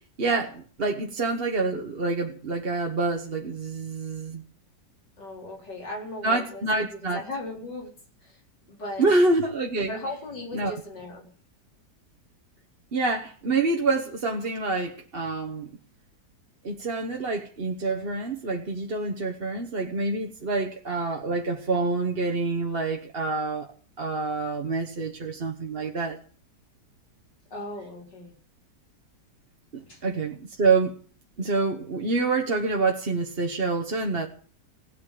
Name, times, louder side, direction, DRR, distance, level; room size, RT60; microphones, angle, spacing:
voice 1, 0.2-4.4 6.2-7.2 9.0-9.9 10.5-10.8 12.9-15.7 16.6-23.7 24.0-26.2 29.7-31.0 31.4-34.3, right 3 dB, 35° right, 2 dB, 1.4 m, -27 dB
voice 2, 5.2-6.6 7.1-7.9 8.2-8.3 8.7-9.1 9.9-11.3 27.5-28.3 29.8-30.0, left 2 dB, 85° left, 0 dB, 5.3 m, -37 dB
17.5 x 8.5 x 8.5 m, 0.43 s
omnidirectional pair, 1.8 m